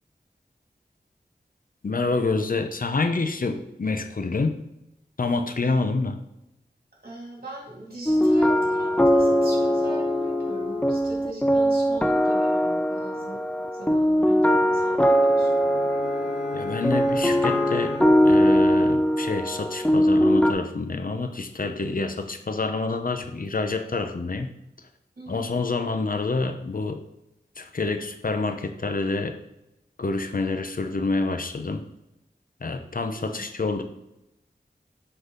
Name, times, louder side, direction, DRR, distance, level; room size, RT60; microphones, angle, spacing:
voice 1, 1.8-4.6 5.2-6.2 16.5-17.9 18.2-24.5 25.3-27.0 27.6-29.4 30.0-31.8 32.6-33.8, left 3 dB, 55° left, 7 dB, 0.7 m, -27 dB
voice 2, 7.0-13.4 13.7-15.6 25.2-25.4 33.1-33.4, right 1 dB, 60° right, -3 dB, 2.7 m, -41 dB
sound 1, 8.1-20.5, equal, 5° left, 0.5 m, -21 dB
sound 2, 14.9-19.6, left 5 dB, 85° left, 0.8 m, -40 dB
8.0 x 3.9 x 3.9 m, 0.87 s
wide cardioid pair, 60°, 17 cm